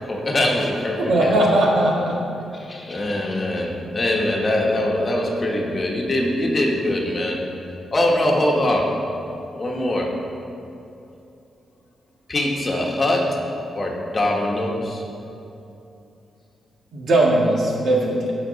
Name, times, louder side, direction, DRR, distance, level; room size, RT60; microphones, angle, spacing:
voice 1, 0.0-1.3 2.6-7.5 7.9-9.2 9.5-10.2 12.3-15.1, left 1 dB, 30° left, -1 dB, 1.2 m, -23 dB
voice 2, 1.0-2.2 16.9-18.3, right 1 dB, 65° right, -3 dB, 1.9 m, -19 dB
15.5 x 5.9 x 4.0 m, 2.8 s
wide cardioid pair, 155°, 0 cm